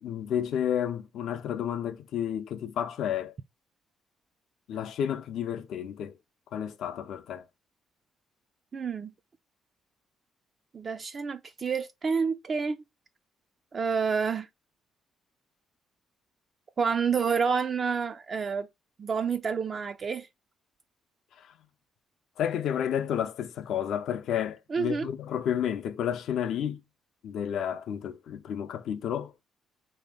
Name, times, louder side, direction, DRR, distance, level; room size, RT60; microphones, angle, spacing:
voice 1, 0.0-3.3 4.7-6.2 6.5-7.4 21.4-21.5 22.4-26.8 27.2-29.3, left 9 dB, 75° left, 0.5 m, -31 dB
voice 2, 8.7-9.1 10.7-12.8 13.7-14.5 16.8-18.7 19.0-20.3 24.7-25.1, right 5 dB, 45° right, 0.3 m, -28 dB
3.3 x 2.7 x 3.5 m
cardioid pair, 90°, 0 cm